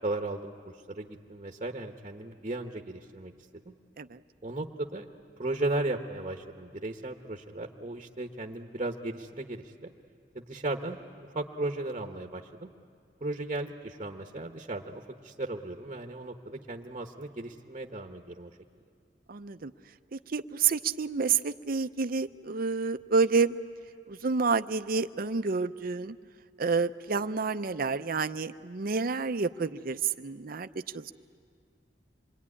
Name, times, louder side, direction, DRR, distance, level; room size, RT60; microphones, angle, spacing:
voice 1, 0.0-3.3 3.6-3.7 4.4-5.1 5.4-9.9 10.3-12.7 13.2-18.5, right 2 dB, 35° right, 4 dB, 1.1 m, -36 dB
voice 2, 19.3-19.7 20.1-23.5 24.1-26.2 26.6-30.7 30.9-31.1, right 5 dB, 55° right, 11 dB, 0.6 m, -29 dB
27.0 x 22.5 x 9.8 m, 2.2 s
head